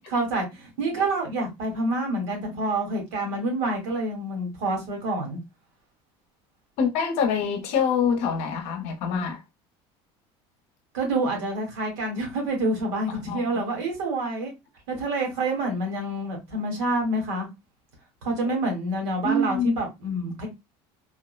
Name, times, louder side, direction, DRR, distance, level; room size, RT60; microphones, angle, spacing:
voice 1, 0.1-5.4 10.9-14.5 14.9-17.5 18.2-20.5, right 2 dB, 75° right, 1.5 m, -27 dB
voice 2, 6.8-9.4 13.3-13.7 19.2-19.8, left 5 dB, 55° left, 0.8 m, -25 dB
3.5 x 2.1 x 2.3 m
cardioid pair, 170°, 13 cm